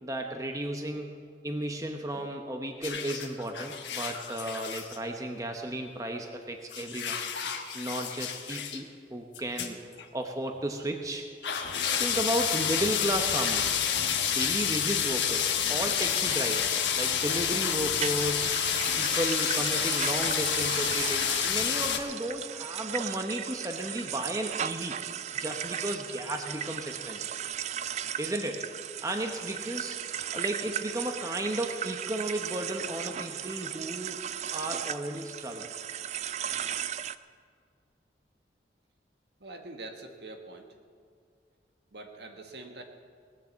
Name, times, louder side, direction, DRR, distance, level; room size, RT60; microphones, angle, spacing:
voice 1, 0.0-7.2 7.7-9.8 10.1-11.3 12.0-13.8 14.3-18.5 19.0-25.0 25.3-27.3 28.2-28.6 29.0-30.0 30.3-34.2 34.5-35.7, right 1 dB, 20° right, 3 dB, 0.9 m, -34 dB
sound 1, 2.8-5.0 6.7-8.8 9.3-9.7 10.0-10.1 10.9-11.0 11.4-22.0, left 8 dB, 90° left, 1.3 m, -29 dB
sound 2, 17.9-37.2, right 9 dB, 40° right, 0.3 m, -36 dB
voice 2, 39.4-40.7 41.9-42.8, right 2 dB, 70° right, 4 dB, 1.5 m, -44 dB
19.0 x 7.6 x 7.4 m, 2.1 s
head